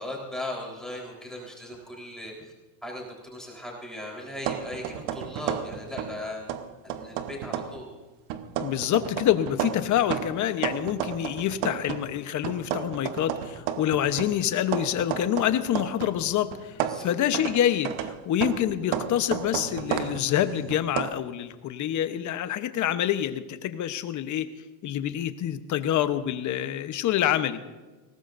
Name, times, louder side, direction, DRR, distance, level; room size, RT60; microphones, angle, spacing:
voice 1, 0.0-2.3 2.8-6.5 6.9-7.9 16.8-17.1, left 1 dB, ahead, -3 dB, 4.0 m, -38 dB
sound 1, 4.4-6.2 6.5-7.8 8.3-12.1 12.4-16.2 16.5-21.1, right 10 dB, 65° right, 1.2 m, -32 dB
voice 2, 8.6-24.5 24.8-27.6, left 11 dB, 35° left, 10 dB, 1.0 m, -26 dB
21.5 x 18.5 x 2.6 m, 1.2 s
supercardioid pair, 135°, 48 cm